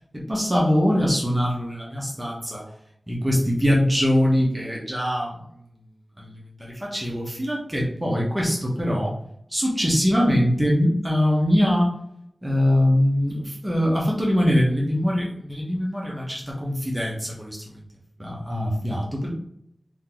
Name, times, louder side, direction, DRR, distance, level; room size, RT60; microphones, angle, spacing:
voice 1, 0.1-2.6 3.1-5.4 6.2-9.1 9.5-12.0 12.4-17.8 18.2-19.3, equal, 20° right, -3 dB, 1.0 m, -23 dB
3.6 x 2.8 x 3.9 m, 0.73 s
wide cardioid pair, 85°, 0 cm